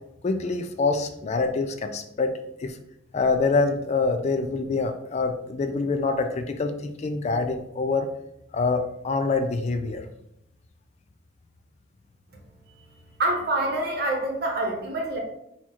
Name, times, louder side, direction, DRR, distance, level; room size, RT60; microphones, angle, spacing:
voice 1, 0.2-2.3 2.6-2.8 3.1-8.1 8.5-10.0, left 3 dB, 35° left, 7 dB, 0.3 m, -25 dB
voice 2, 13.2-15.2, right 2 dB, 55° right, 1 dB, 1.0 m, -26 dB
4.3 x 2.4 x 4.3 m, 0.80 s
head